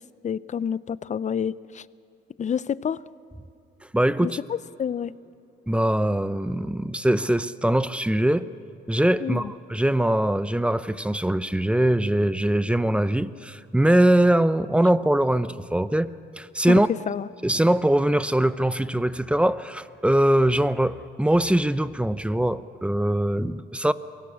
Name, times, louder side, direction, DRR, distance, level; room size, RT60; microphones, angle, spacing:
voice 1, 0.2-1.9 2.4-3.0 4.2-5.1 9.2-9.5 16.7-16.8 17.1-17.3, left 8 dB, 35° left, 19 dB, 0.5 m, -28 dB
voice 2, 3.9-4.4 5.7-8.5 8.9-16.1 16.4-16.9 17.4-23.9, right 1 dB, 5° right, 14 dB, 0.7 m, -22 dB
23.0 x 17.0 x 8.5 m, 2.8 s
cardioid pair, 90°, 20 cm